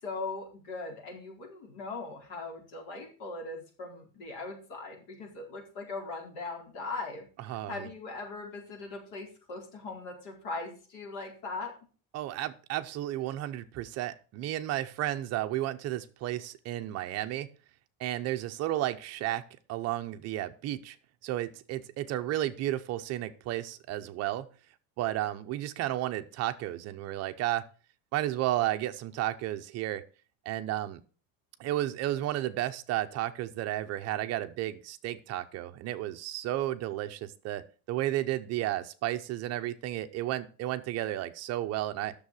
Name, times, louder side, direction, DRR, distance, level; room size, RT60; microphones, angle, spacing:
voice 1, 0.0-11.7, left 3 dB, 60° left, 0 dB, 4.5 m, -40 dB
voice 2, 7.4-7.9 12.1-17.5 18.0-19.4 19.7-21.0 21.2-24.5 25.0-27.6 28.1-30.0 30.5-31.0 31.6-42.1, right 14 dB, 35° right, 9 dB, 0.7 m, -33 dB
10.0 x 6.8 x 6.3 m, 0.38 s
cardioid pair, 175°, 43 cm